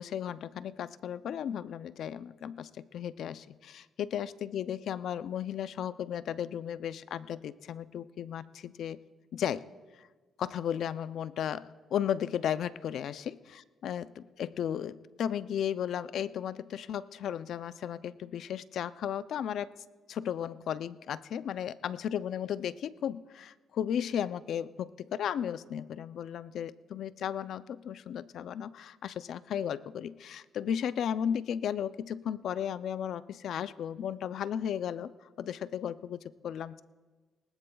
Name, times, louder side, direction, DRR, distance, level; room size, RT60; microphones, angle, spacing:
voice 1, 0.0-9.0 9.3-9.6 10.0-10.1 10.4-13.4 13.8-19.7 20.1-36.8, left 9 dB, 70° left, 15 dB, 0.4 m, -35 dB
20.0 x 18.5 x 2.3 m, 1.3 s
cardioid pair, 90°, 0 cm